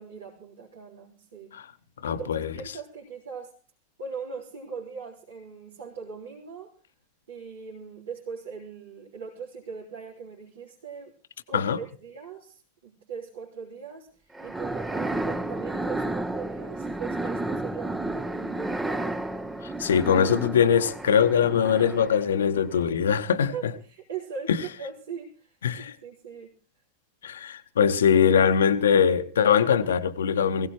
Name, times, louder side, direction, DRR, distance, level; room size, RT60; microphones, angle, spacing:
voice 1, 0.0-1.5 2.1-3.6 4.0-6.7 7.3-11.1 11.5-19.2 23.5-26.5, right 6 dB, 65° right, 3.6 m, -40 dB
voice 2, 2.0-2.5 11.5-11.8 19.8-23.5 24.5-24.6 25.6-25.9 27.2-30.7, left 7 dB, 65° left, 0.9 m, -22 dB
sound 1, 14.3-22.4, right 2 dB, 10° right, 0.8 m, -32 dB
21.0 x 16.5 x 3.1 m
figure-of-eight pair, 90°, 0 cm